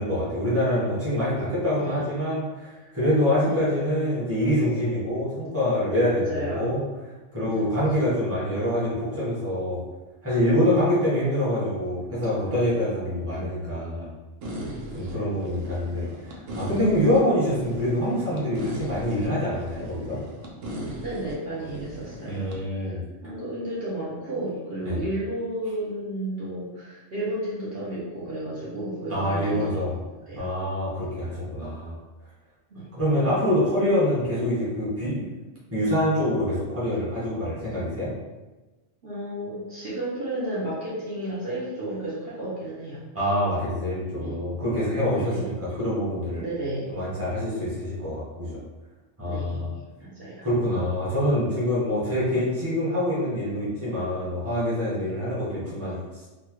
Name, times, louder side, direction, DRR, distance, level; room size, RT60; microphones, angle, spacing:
voice 1, 0.0-6.8 7.3-9.8 10.2-14.1 14.9-20.2 22.2-23.0 24.8-25.0 29.1-29.9 30.4-32.0 33.0-35.2 35.7-38.1 43.1-46.4 46.9-48.6 49.2-49.7 50.4-56.0, left 1 dB, 10° right, -9 dB, 1.0 m, -25 dB
voice 2, 6.1-6.8 7.4-7.7 10.6-10.9 13.3-13.6 14.9-15.4 21.0-29.9 30.3-30.5 30.9-31.1 32.7-32.8 39.0-43.0 44.2-44.4 45.1-45.5 46.4-47.0 49.2-49.7 50.0-50.5 54.9-55.1, right 1 dB, 55° right, -8 dB, 1.0 m, -33 dB
sound 1, 14.4-22.6, equal, 85° right, 1.0 m, -37 dB
4.0 x 2.2 x 3.0 m, 1.1 s
omnidirectional pair, 1.3 m